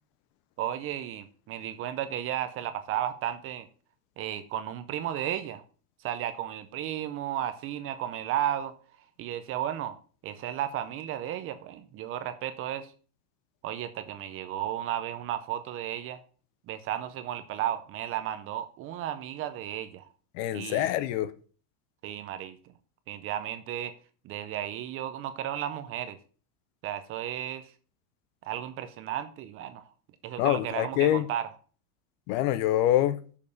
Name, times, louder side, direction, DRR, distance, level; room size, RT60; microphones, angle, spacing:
voice 1, 0.6-3.7 4.2-5.6 6.0-8.7 9.2-10.0 10.2-12.9 13.6-16.2 16.7-20.1 20.5-20.9 22.0-22.6 23.1-23.9 24.2-26.2 26.8-27.7 28.4-29.8 30.2-31.4, right 11 dB, 30° right, 0.5 m, -34 dB
voice 2, 20.3-21.3 30.4-31.3 32.3-33.2, left 13 dB, 50° left, 0.7 m, -25 dB
6.6 x 5.4 x 6.4 m
supercardioid pair, 155°, 47 cm